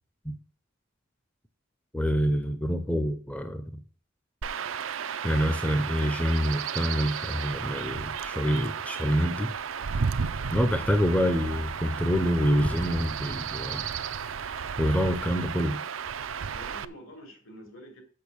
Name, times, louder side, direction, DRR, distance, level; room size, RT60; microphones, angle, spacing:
voice 1, 1.9-3.8 5.2-9.6 10.5-13.9 14.5-15.8, equal, 5° left, 0.6 m, -26 dB
Chirp tweet / Wind / Stream, 4.4-16.8, right 6 dB, 70° right, 0.5 m, -33 dB
voice 2, 10.5-10.9 16.5-18.0, equal, 75° left, 3.5 m, -47 dB
6.7 x 6.6 x 7.0 m
head